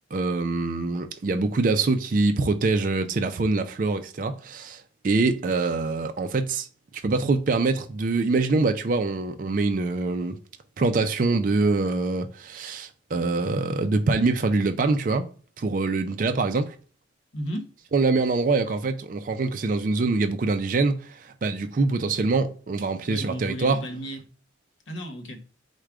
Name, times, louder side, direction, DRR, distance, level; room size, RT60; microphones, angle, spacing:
voice 1, 0.1-6.7 6.9-10.4 10.8-15.3 15.6-16.7 17.9-23.8, right 3 dB, 45° right, 0.4 m, -24 dB
voice 2, 17.3-17.7 23.1-24.2 24.9-25.4, equal, 80° left, 1.0 m, -34 dB
4.7 x 2.2 x 4.7 m
head